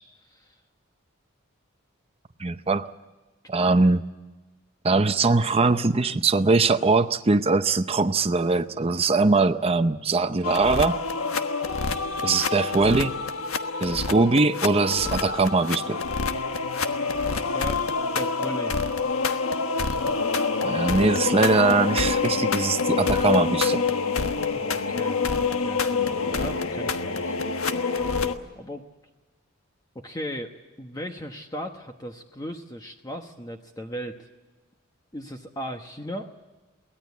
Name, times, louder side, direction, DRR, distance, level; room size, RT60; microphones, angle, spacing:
voice 1, 2.4-2.9 3.5-4.0 4.8-11.0 12.2-13.2 13.8-16.0 20.6-23.8, right 3 dB, 30° right, 9 dB, 0.6 m, -21 dB
sound 1, 10.4-28.4, left 4 dB, 85° left, 1.3 m, -26 dB
voice 2, 17.0-17.8 18.1-18.8 24.1-27.4 28.5-28.8 29.9-34.3 35.1-36.3, equal, 15° left, 4 dB, 1.0 m, -37 dB
23.5 x 17.5 x 8.4 m, 1.2 s
head